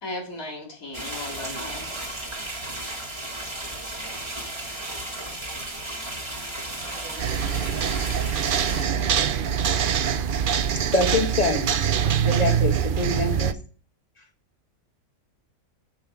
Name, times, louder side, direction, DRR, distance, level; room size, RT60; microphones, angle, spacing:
voice 1, 0.0-2.2 8.9-9.3, left 1 dB, 85° left, 3.2 m, -37 dB
sound 1, 0.9-8.8, right 1 dB, 20° right, 1.7 m, -34 dB
voice 2, 6.7-7.6 8.9-9.9, right 5 dB, 85° right, 1.6 m, -44 dB
sound 2, 7.2-13.5, right 8 dB, 55° right, 0.6 m, -24 dB
voice 3, 10.9-11.7 12.2-13.5, left 3 dB, 30° left, 1.4 m, -25 dB
7.6 x 7.4 x 4.6 m
omnidirectional pair, 1.4 m